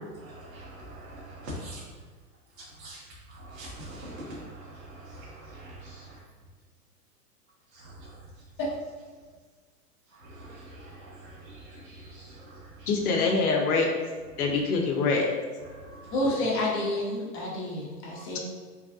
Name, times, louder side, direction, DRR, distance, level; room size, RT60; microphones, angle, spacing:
voice 1, 0.2-1.8 2.8-3.0 3.3-6.1 7.8-8.1 10.2-12.9 15.7-16.1, right 1 dB, 55° right, -4 dB, 1.2 m, -44 dB
voice 2, 12.9-13.9 14.4-15.3, left 4 dB, 70° left, 2 dB, 0.7 m, -24 dB
voice 3, 16.1-18.4, left 1 dB, 25° left, -4 dB, 0.8 m, -29 dB
3.3 x 2.3 x 2.4 m, 1.5 s
hypercardioid pair, 115°, 47 cm